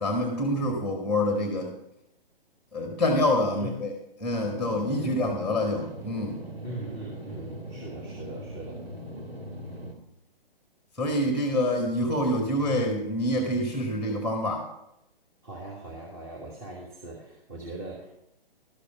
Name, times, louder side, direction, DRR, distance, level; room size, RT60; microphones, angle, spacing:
voice 1, 0.0-1.7 2.7-3.9 4.2-6.4 11.0-14.7, left 1 dB, ahead, 3 dB, 1.0 m, -26 dB
sound 1, 4.3-9.9, right 1 dB, 80° right, 2.1 m, -40 dB
voice 2, 6.6-8.8 15.4-18.1, right 2 dB, 25° right, -3 dB, 1.5 m, -40 dB
12.0 x 6.8 x 4.8 m, 0.85 s
figure-of-eight pair, 130°, 29 cm